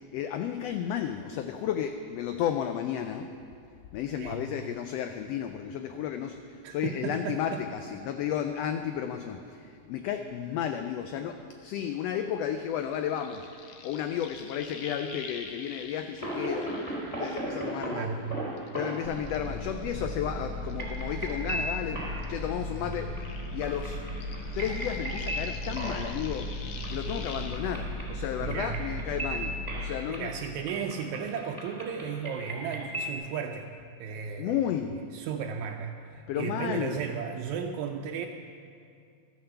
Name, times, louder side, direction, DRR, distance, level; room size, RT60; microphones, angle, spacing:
voice 1, 0.0-3.3 3.9-18.1 18.7-23.2 23.5-24.0 24.5-26.5 26.9-30.3 34.4-35.0 36.3-37.0, left 9 dB, 85° left, 7 dB, 1.4 m, -33 dB
voice 2, 6.6-7.6 17.9-18.2 27.2-27.3 28.4-28.8 30.1-33.7 34.0-34.6 35.1-38.3, right 7 dB, 80° right, 3 dB, 1.9 m, -34 dB
sound 1, 12.7-18.2 18.6-21.9 22.2-27.6, left 5 dB, 65° left, 1.6 m, -46 dB
sound 2, 16.2-33.2, right 1 dB, 10° left, 3.4 m, -38 dB
sound 3, 19.0-29.8, equal, 55° right, 1.2 m, -37 dB
13.0 x 6.7 x 6.8 m, 2.3 s
omnidirectional pair, 3.3 m